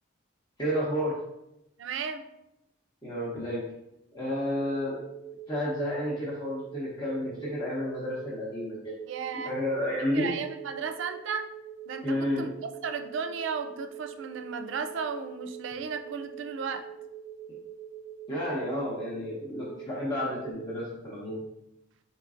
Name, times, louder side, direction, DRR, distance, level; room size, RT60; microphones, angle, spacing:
voice 1, 0.6-1.2 3.0-3.6 4.1-5.0 5.5-8.9 9.4-10.3 12.0-12.5 18.3-21.4, left 1 dB, 20° left, -7 dB, 0.7 m, -31 dB
voice 2, 1.8-2.2 9.0-9.6 10.1-11.5 11.9-12.5 12.8-16.9, right 6 dB, 75° right, 7 dB, 0.3 m, -34 dB
sound 1, 4.5-20.5, right 9 dB, 70° left, 0.6 m, -44 dB
3.9 x 3.8 x 2.4 m, 0.88 s
head